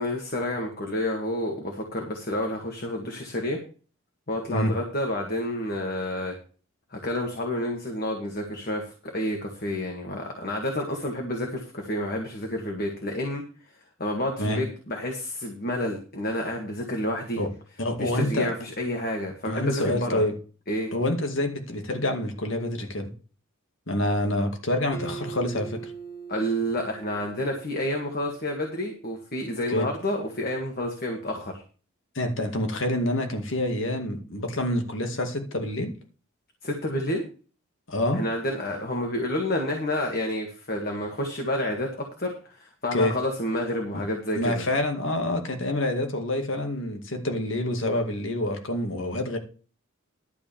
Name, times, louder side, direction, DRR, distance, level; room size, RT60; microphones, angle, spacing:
voice 1, 0.0-3.6 4.3-6.3 6.9-13.4 14.0-17.4 18.0-20.2 20.7-20.9 26.3-31.6 36.6-37.2 38.1-44.6, left 1 dB, 45° left, 2 dB, 1.9 m, -29 dB
voice 2, 17.8-18.5 19.4-20.3 20.9-23.1 23.9-25.8 29.7-29.9 32.2-35.9 37.9-38.2 42.9-43.1 44.4-49.4, left 1 dB, 65° left, 5 dB, 2.2 m, -27 dB
Acoustic guitar, 24.9-28.3, right 6 dB, 15° left, 1.3 m, -41 dB
12.0 x 4.9 x 7.2 m, 0.37 s
head